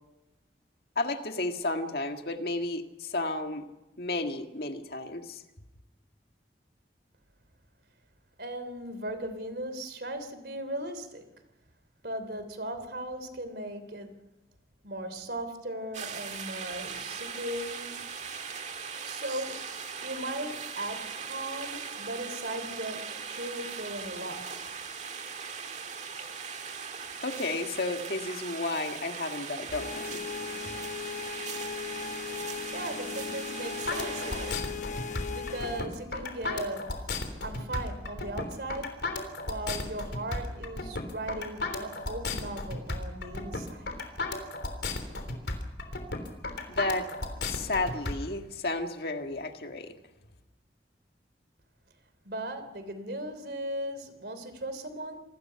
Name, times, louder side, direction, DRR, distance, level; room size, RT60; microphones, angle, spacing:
voice 1, 1.0-3.7 4.0-5.4 27.2-30.2 46.7-47.1 47.4-49.9, left 2 dB, 60° left, 5 dB, 1.9 m, -32 dB
voice 2, 8.4-11.2 12.0-14.1 14.8-18.2 19.0-19.6 20.0-23.0 23.3-24.4 32.4-34.6 35.2-36.9 37.4-38.9 39.4-43.9 52.2-55.2, right 1 dB, 65° right, 10 dB, 3.2 m, -37 dB
sound 1, 15.9-34.5, right 6 dB, 40° right, 1.7 m, -39 dB
sound 2, 29.7-35.9, left 6 dB, 45° left, 1.0 m, -38 dB
sound 3, 33.9-48.1, left 2 dB, 80° left, 3.5 m, -34 dB
27.0 x 20.0 x 5.8 m, 1.0 s
head